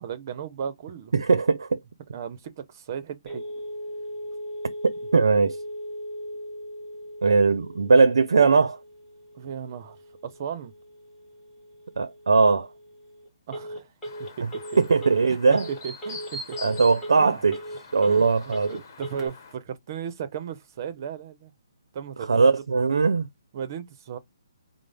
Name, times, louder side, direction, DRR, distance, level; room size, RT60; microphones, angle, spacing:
voice 1, 0.0-1.1 2.1-3.4 9.3-10.0 10.2-10.7 13.5-13.9 14.2-14.6 15.3-16.7 17.2-17.4 18.1-21.5 21.9-22.5 23.5-24.2, right 8 dB, 40° right, 0.6 m, -36 dB
voice 2, 1.1-1.8 4.8-5.6 7.2-8.8 12.0-12.7 14.4-14.5 14.8-15.7 16.6-17.6 17.9-18.8 22.2-23.3, right 4 dB, 85° right, 0.5 m, -20 dB
Telephone, 3.3-19.3, equal, 5° left, 1.2 m, -39 dB
Chirp tweet, 14.0-19.5, left 1 dB, 40° left, 1.2 m, -43 dB
4.9 x 2.0 x 3.3 m
hypercardioid pair, 150°, 2 cm